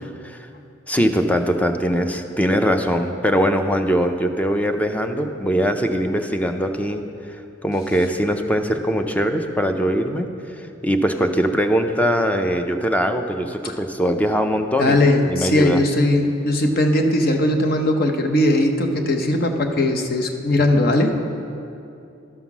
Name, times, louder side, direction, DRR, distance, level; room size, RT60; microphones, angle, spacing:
voice 1, 0.0-0.5 0.9-10.3 10.6-15.0 15.3-15.8, equal, 10° left, 6 dB, 0.5 m, -21 dB
voice 2, 14.8-21.2, left 1 dB, 50° left, 5 dB, 0.8 m, -19 dB
12.5 x 5.7 x 6.0 m, 2.6 s
head